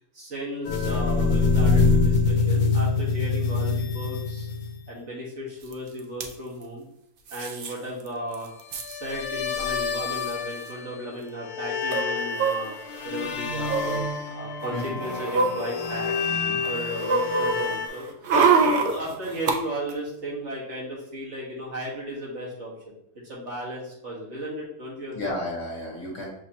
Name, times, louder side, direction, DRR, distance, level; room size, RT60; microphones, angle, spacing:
voice 1, 0.1-4.5 4.9-6.9 7.3-8.5 8.8-12.7 13.0-16.2 16.7-18.1 18.6-25.3, equal, 50° right, -6 dB, 1.7 m, -35 dB
sound 1, 0.7-4.9 8.7-11.1 11.4-17.9, left 4 dB, 85° left, 1.1 m, -26 dB
sound 2, 5.7-5.8 6.0-6.3 7.3-7.7 8.1-8.2 8.3-8.9 9.8-9.9 10.1-10.3 11.9-13.0 13.6-14.0 14.6-16.3 16.6-19.6 19.9-20.0, right 4 dB, 70° right, 0.5 m, -25 dB
voice 2, 16.3-16.6 25.1-26.3, left 1 dB, 50° left, -3 dB, 1.3 m, -33 dB
6.3 x 2.9 x 2.8 m, 0.75 s
omnidirectional pair, 1.6 m